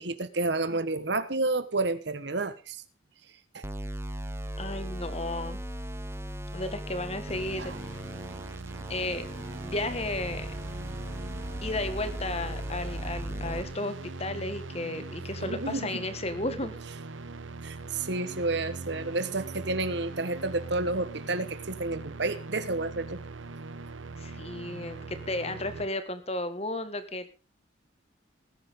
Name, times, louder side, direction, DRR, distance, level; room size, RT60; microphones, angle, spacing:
voice 1, 0.0-2.8 3.5-3.6 7.6-7.8 15.4-16.0 17.6-23.2, right 2 dB, 60° right, 13 dB, 1.3 m, -30 dB
sound 1, 3.6-13.6, equal, 15° right, 1.0 m, -38 dB
voice 2, 4.6-5.6 6.5-8.0 8.9-10.5 11.6-16.8 24.2-27.3, left 2 dB, 30° left, 10 dB, 1.7 m, -34 dB
sound 2, 7.3-25.9, right 3 dB, 85° right, 1.1 m, -41 dB
19.5 x 10.5 x 3.7 m, 0.32 s
head